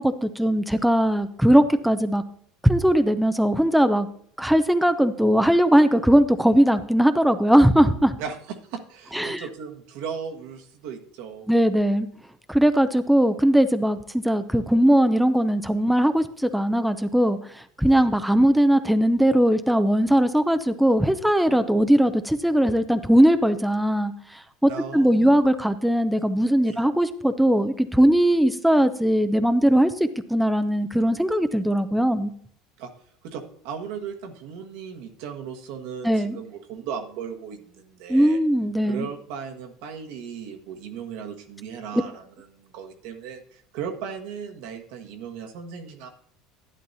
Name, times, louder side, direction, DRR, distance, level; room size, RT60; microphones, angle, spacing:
voice 1, 0.0-2.2 2.6-4.1 4.4-8.2 9.1-9.4 11.5-12.1 12.5-32.3 36.0-36.4 38.1-39.1, equal, ahead, 10 dB, 0.5 m, -20 dB
voice 2, 8.2-11.5 17.9-18.0 21.5-21.6 24.7-25.4 26.6-26.8 32.8-32.9 33.2-38.4 38.9-42.2 42.5-46.1, right 7 dB, 75° right, 3 dB, 1.4 m, -36 dB
11.0 x 10.5 x 2.7 m, 0.63 s
supercardioid pair, 125°, 0 cm